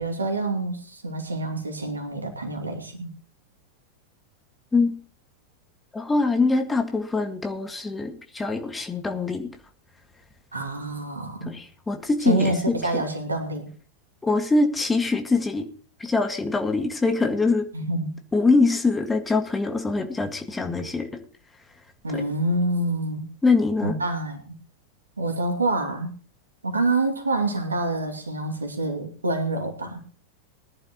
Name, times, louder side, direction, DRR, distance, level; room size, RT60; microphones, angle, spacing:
voice 1, 0.0-3.1 10.5-11.5 12.2-13.7 17.7-18.1 22.0-23.3 23.8-24.5 25.2-26.1 26.6-30.0, right 2 dB, 75° right, 5 dB, 2.5 m, -27 dB
voice 2, 5.9-9.5 11.5-13.0 14.2-15.7 16.0-17.7 18.3-21.1 22.1-22.2 23.4-24.0, left 3 dB, 10° left, 5 dB, 1.9 m, -23 dB
20.0 x 11.0 x 3.1 m, 0.41 s
figure-of-eight pair, 90°, 0 cm